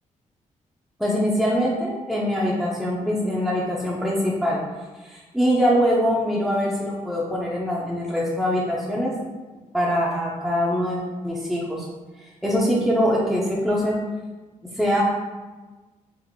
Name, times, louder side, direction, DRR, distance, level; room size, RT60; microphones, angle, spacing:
voice 1, 1.0-4.6 5.0-9.1 9.7-11.9 12.2-14.0 14.7-15.0, equal, ahead, -6 dB, 0.5 m, -23 dB
3.7 x 3.1 x 3.5 m, 1.3 s
wide cardioid pair, 140°, 13 cm